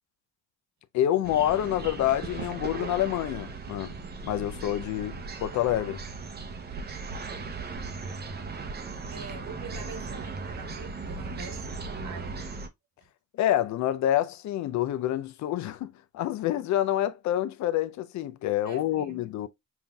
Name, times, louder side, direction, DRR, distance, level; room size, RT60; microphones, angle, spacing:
voice 1, 0.9-4.0 4.2-6.0 13.3-19.5, left 12 dB, 70° left, 0.5 m, -27 dB
sound 1, 1.2-12.7, right 4 dB, 35° right, 0.7 m, -37 dB
voice 2, 9.1-11.7 12.0-12.7 18.6-19.2, right 6 dB, 70° right, 1.3 m, -44 dB
5.6 x 2.7 x 2.2 m
cardioid pair, 90°, 30 cm